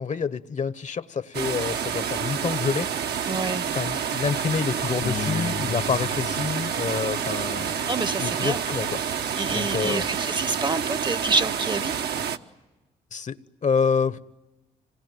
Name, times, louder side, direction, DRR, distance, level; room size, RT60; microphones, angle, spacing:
voice 1, 0.0-2.9 3.7-7.7 8.2-8.9 9.5-10.1 13.1-14.2, left 5 dB, 45° left, 15 dB, 1.0 m, -27 dB
sound 1, 1.3-12.4, right 7 dB, 70° right, 1.0 m, -28 dB
voice 2, 3.3-3.7 7.9-8.6 9.4-11.9, right 3 dB, 25° right, 16 dB, 0.9 m, -27 dB
Bass guitar, 5.0-11.3, left 9 dB, 80° left, 2.8 m, -39 dB
26.5 x 19.5 x 9.2 m, 1.1 s
supercardioid pair, 60°, 17 cm